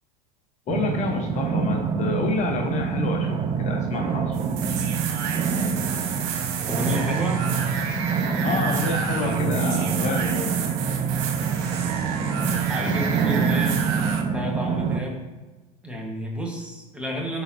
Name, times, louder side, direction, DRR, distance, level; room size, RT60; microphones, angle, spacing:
voice 1, 0.7-4.5 8.4-10.6, left 4 dB, 35° left, 3 dB, 0.8 m, -29 dB
sound 1, 0.7-15.0, right 6 dB, 25° right, 0.5 m, -26 dB
sound 2, 4.3-14.2, right 7 dB, 60° right, 1.0 m, -31 dB
voice 2, 6.7-7.4 9.1-9.9 12.7-13.8 14.3-15.2 15.8-17.4, equal, 5° right, -1 dB, 1.6 m, -30 dB
11.0 x 3.9 x 3.0 m, 1.2 s
supercardioid pair, 105°, 20 cm